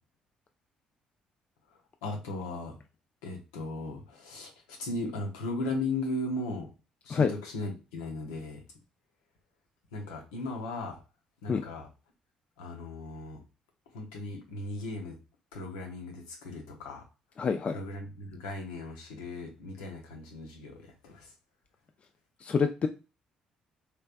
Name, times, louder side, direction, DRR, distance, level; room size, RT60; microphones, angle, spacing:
voice 1, 1.7-2.8 3.2-6.7 7.0-8.6 9.9-11.0 11.4-11.9 12.6-13.4 13.9-15.2 15.5-17.0 17.7-21.3, left 2 dB, 80° left, 2 dB, 0.9 m, -37 dB
voice 2, 17.4-17.8 22.4-22.9, left 5 dB, 40° left, 6 dB, 0.4 m, -26 dB
3.2 x 3.2 x 2.4 m, 0.31 s
hypercardioid pair, 50°, 3 cm